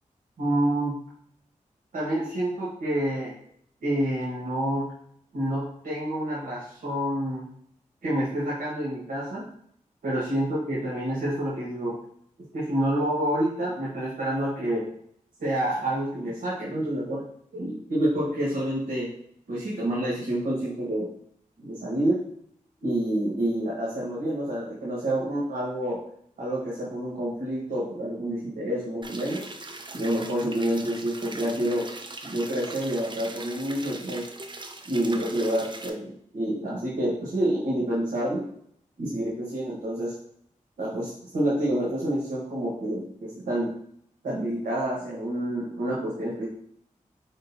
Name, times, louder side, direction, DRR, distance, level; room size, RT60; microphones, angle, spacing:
voice 1, 0.4-1.0 1.9-3.3 3.8-4.9 5.3-7.4 8.0-9.4 10.0-12.0 12.5-14.8 15.4-17.2 17.5-19.1 19.5-21.1 21.6-22.2 22.8-26.0 26.4-29.4 29.9-31.9 32.2-34.2 34.8-36.1 36.3-38.4 39.0-40.1 40.8-43.7 44.2-46.5, right 1 dB, 90° right, -7 dB, 1.2 m, -28 dB
sound 1, 29.0-35.9, right 2 dB, 35° right, 0.6 m, -40 dB
4.8 x 3.7 x 2.6 m, 0.68 s
cardioid pair, 40°, 14 cm